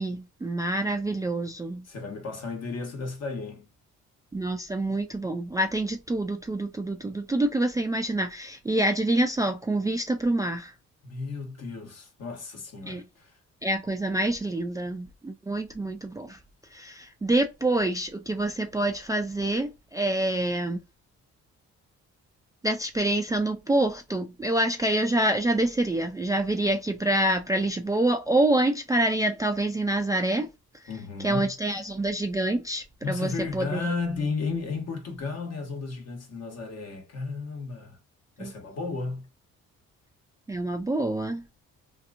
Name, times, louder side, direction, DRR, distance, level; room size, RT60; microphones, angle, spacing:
voice 1, 0.0-1.8 4.3-10.7 12.9-13.0 13.6-16.4 16.7-20.8 22.6-30.5 31.2-33.9 38.4-38.5 40.5-41.4, right 1 dB, 10° right, 0.3 m, -26 dB
voice 2, 1.8-3.7 11.0-13.3 30.9-31.5 33.0-38.0 38.4-39.3, left 4 dB, 55° left, 1.1 m, -33 dB
2.8 x 2.5 x 2.4 m
cardioid pair, 90°, 30 cm